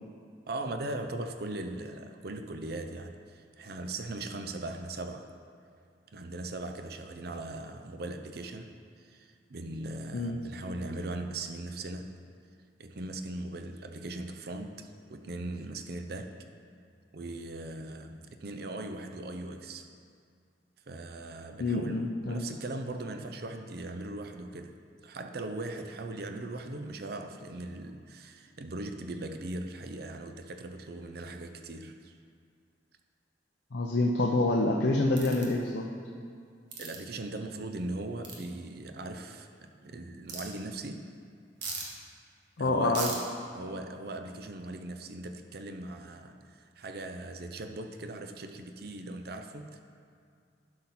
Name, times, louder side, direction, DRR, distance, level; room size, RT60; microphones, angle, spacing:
voice 1, 0.5-5.3 6.1-8.7 9.0-12.2 12.8-16.3 17.1-19.9 20.9-24.7 25.0-32.2 36.8-41.1 42.6-43.3 43.5-49.8, right 2 dB, 55° right, 6 dB, 0.6 m, -39 dB
voice 2, 21.6-22.4 33.7-35.9 42.6-43.1, left 2 dB, 65° left, 1 dB, 0.6 m, -27 dB
sound 1, 35.2-35.5 36.7-37.0 38.2-38.4 40.3-40.4 41.6-41.9 42.9-43.2, right 4 dB, 80° right, 1.5 m, -37 dB
11.5 x 5.8 x 4.3 m, 2.3 s
head